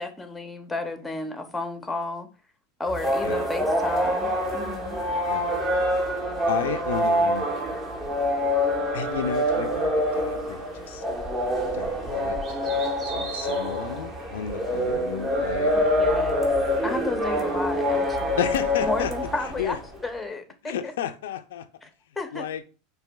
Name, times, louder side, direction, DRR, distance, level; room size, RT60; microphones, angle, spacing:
voice 1, 0.0-2.3 2.8-5.0 15.7-16.5 16.8-18.4 18.8-19.8 20.0-20.9 21.8-21.9 22.2-22.4, left 2 dB, 10° left, 0.6 m, -33 dB
sound 1, 2.9-19.9, equal, 25° right, 0.9 m, -26 dB
voice 2, 5.2-5.6 6.5-7.5 8.9-11.0 11.7-15.7 18.4-19.1 19.4-19.8 20.6-21.7 22.3-22.6, left 9 dB, 85° left, 0.3 m, -32 dB
4.6 x 2.6 x 2.2 m
supercardioid pair, 125°, 0 cm